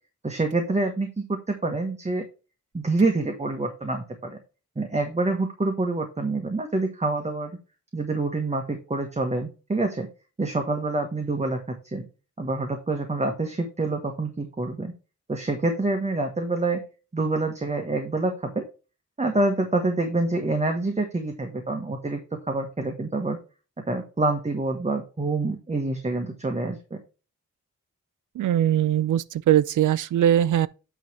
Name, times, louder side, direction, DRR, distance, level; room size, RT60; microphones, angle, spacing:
voice 1, 0.2-2.2 2.7-4.4 4.8-7.6 7.9-10.1 10.4-12.0 12.4-14.9 15.3-16.8 17.1-18.6 19.2-22.2 22.5-23.4 23.9-27.0, right 2 dB, 20° right, 1.2 m, -26 dB
voice 2, 28.4-30.7, right 11 dB, 85° right, 0.5 m, -21 dB
9.0 x 3.2 x 5.9 m
wide cardioid pair, 85°, 30 cm